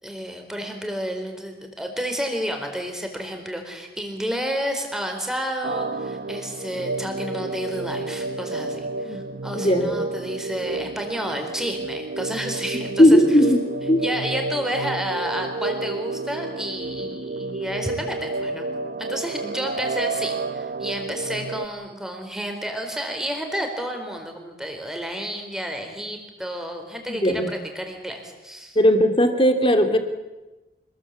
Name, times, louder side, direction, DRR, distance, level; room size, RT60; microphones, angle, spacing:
voice 1, 0.0-13.2 14.0-18.7 19.0-28.8, equal, 5° right, 4 dB, 4.1 m, -31 dB
sound 1, 5.6-21.7, right 3 dB, 60° right, 0.9 m, -30 dB
voice 2, 9.5-9.9 12.7-14.0 27.1-27.5 28.8-30.0, equal, 30° left, 7 dB, 2.6 m, -18 dB
26.5 x 20.5 x 8.4 m, 1.1 s
head